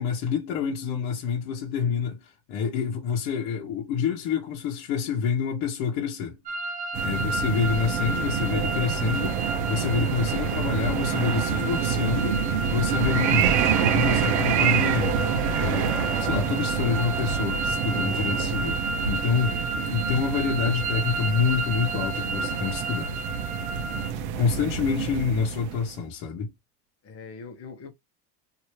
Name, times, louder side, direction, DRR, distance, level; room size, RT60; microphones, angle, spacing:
voice 1, 0.0-6.4 7.0-15.2 15.6-19.6 19.9-23.2 24.4-26.5, left 6 dB, 50° left, 1.2 m, -27 dB
sound 1, 6.5-24.1, right 3 dB, 15° right, 0.5 m, -32 dB
sound 2, 6.9-26.1, right 7 dB, 50° right, 0.8 m, -27 dB
voice 2, 7.0-7.4 18.3-18.5 19.3-20.0 23.8-24.7 27.0-27.9, left 4 dB, 30° left, 1.0 m, -44 dB
sound 3, 8.5-10.9 15.0-16.6, equal, 5° left, 1.0 m, -41 dB
3.2 x 2.8 x 2.8 m
supercardioid pair, 135°, 49 cm